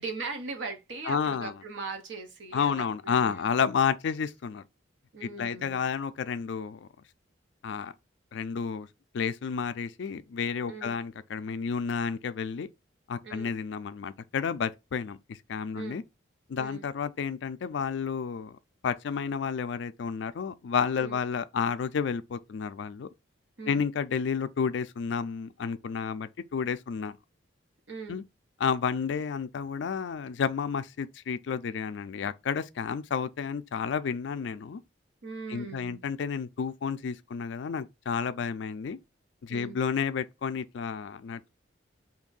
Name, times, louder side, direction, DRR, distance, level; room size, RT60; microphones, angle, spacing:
voice 1, 0.0-3.6 5.1-5.9 10.7-10.9 13.2-13.5 15.7-16.0 16.6-16.9 21.0-21.2 23.6-23.9 27.9-28.2 35.2-36.0 39.5-39.8, right 4 dB, 70° right, 0.8 m, -40 dB
voice 2, 1.1-1.5 2.5-4.6 5.2-6.9 7.6-7.9 8.3-8.9 9.1-12.7 13.1-16.0 16.5-18.6 18.8-23.1 23.7-27.2 28.1-28.2 28.6-34.8 35.5-39.0 39.4-41.5, left 6 dB, 65° left, 0.3 m, -31 dB
2.7 x 2.6 x 3.9 m
head